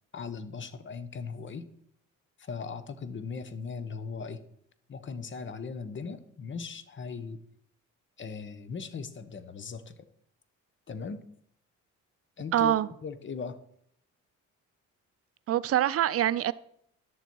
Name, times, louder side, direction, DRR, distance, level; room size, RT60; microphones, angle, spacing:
voice 1, 0.1-1.7 2.4-4.4 4.9-7.4 8.2-10.1 10.9-11.2 12.4-12.8 13.0-13.6, left 5 dB, 40° left, 1.0 m, -38 dB
voice 2, 12.5-12.9 15.5-16.5, right 12 dB, 50° right, 0.4 m, -24 dB
11.0 x 6.8 x 4.6 m
cardioid pair, 90°, 30 cm